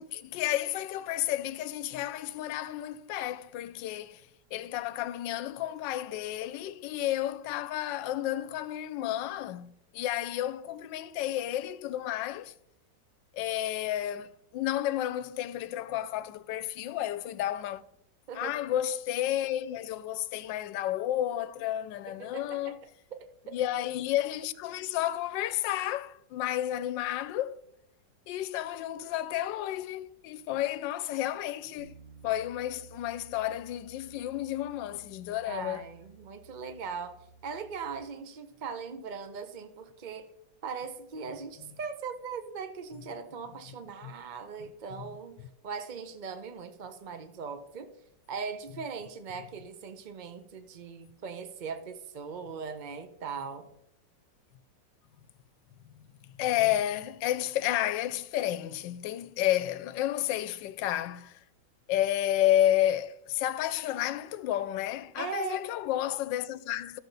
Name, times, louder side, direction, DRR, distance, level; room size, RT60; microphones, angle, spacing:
voice 1, 0.0-12.5 13.3-17.8 18.3-22.8 23.5-27.6 28.3-31.9 32.2-35.8 44.0-44.1 56.4-61.4 61.9-67.0, left 13 dB, 85° left, 1.3 m, -31 dB
voice 2, 22.1-22.7 23.1-23.5 30.5-30.6 35.4-37.1 37.4-40.3 40.6-47.9 48.3-53.7 65.2-65.6, right 5 dB, 60° right, 0.4 m, -39 dB
Bass guitar, 31.8-38.0, right 4 dB, 45° right, 0.9 m, -55 dB
13.0 x 6.7 x 4.0 m
omnidirectional pair, 1.9 m